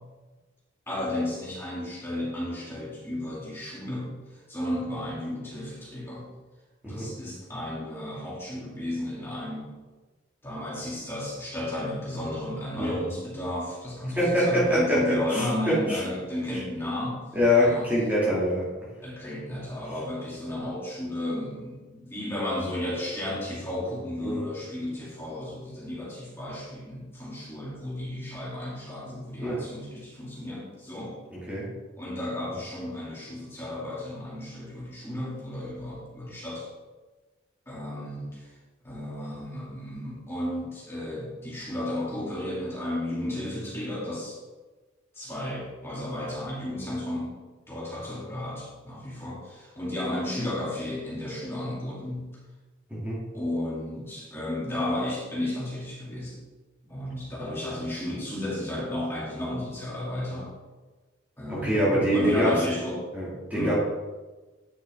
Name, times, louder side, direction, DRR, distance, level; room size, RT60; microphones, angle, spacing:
voice 1, 0.9-6.3 6.9-9.7 10.4-17.2 17.6-17.9 19.0-31.1 32.0-36.7 37.7-38.5 38.8-44.4 45.1-47.4 47.7-52.3 53.3-56.4 56.9-60.5 61.4-63.0 63.5-63.8, left 1 dB, 10° left, -7 dB, 2.4 m, -33 dB
voice 2, 14.1-16.0 17.3-18.6 24.2-24.4 29.4-29.6 31.5-31.6 52.9-53.2 61.5-62.5 63.1-63.3 63.5-63.8, left 1 dB, 10° right, -8 dB, 2.1 m, -24 dB
9.1 x 6.4 x 3.6 m, 1.2 s
head